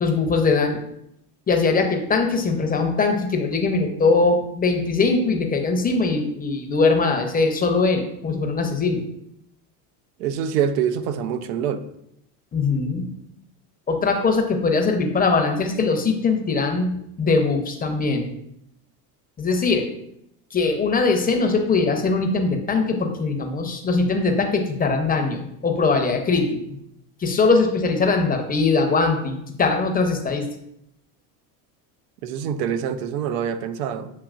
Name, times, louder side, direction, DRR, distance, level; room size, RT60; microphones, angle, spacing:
voice 1, 0.0-0.9 1.5-9.0 12.5-13.1 13.9-16.9 17.2-18.3 19.4-19.8 20.5-26.6 27.2-30.5, left 4 dB, 20° left, 0.6 m, -21 dB
voice 2, 10.2-11.8 32.2-34.1, right 8 dB, 80° right, 0.6 m, -25 dB
7.5 x 2.8 x 2.4 m
supercardioid pair, 105°, 47 cm